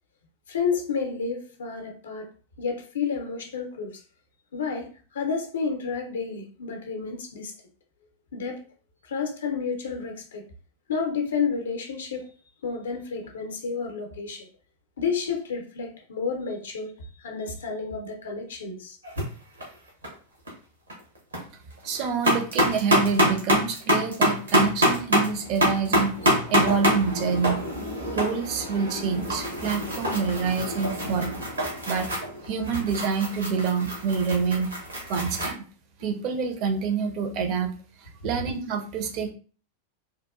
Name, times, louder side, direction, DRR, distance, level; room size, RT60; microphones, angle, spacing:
voice 1, 0.5-2.3 2.6-4.0 4.5-4.9 5.1-7.5 8.3-8.6 9.0-10.5 10.9-12.2 12.6-14.5 15.0-19.0, left 5 dB, 65° left, 0.5 m, -30 dB
sound 1, 19.0-19.2 19.6-20.1 20.5-20.6 20.9-21.4 21.8-35.5, equal, 75° right, 0.9 m, -26 dB
voice 2, 21.8-26.2 26.5-27.6 28.1-31.3 31.9-32.1 32.5-34.7 35.1-35.6 36.0-37.7 38.0-39.3, right 5 dB, 40° right, 0.5 m, -27 dB
2.8 x 2.2 x 2.3 m
figure-of-eight pair, 90°, 0 cm